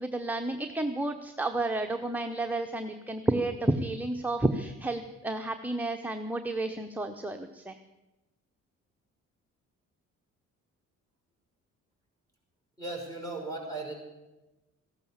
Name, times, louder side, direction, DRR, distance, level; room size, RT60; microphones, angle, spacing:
voice 1, 0.0-7.8, right 2 dB, 5° right, 5 dB, 0.9 m, -31 dB
voice 2, 12.8-13.9, right 2 dB, 10° left, 1 dB, 5.8 m, -36 dB
14.5 x 12.0 x 7.2 m, 1.1 s
cardioid pair, 90°, 30 cm